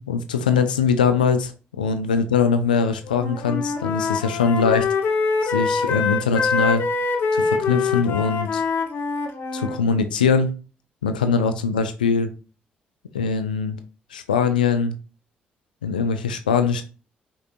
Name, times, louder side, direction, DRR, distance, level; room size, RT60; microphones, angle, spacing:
voice 1, 0.0-1.5 1.8-4.9 5.4-6.8 7.3-8.6 9.5-10.5 11.0-12.3 13.1-13.8 14.1-15.0 15.8-16.8, left 5 dB, 85° left, 0.4 m, -22 dB
Wind instrument woodwind instrument, 3.0-9.8, left 4 dB, 55° left, 0.7 m, -24 dB
5.3 x 2.8 x 2.5 m
figure-of-eight pair, 40°, 5 cm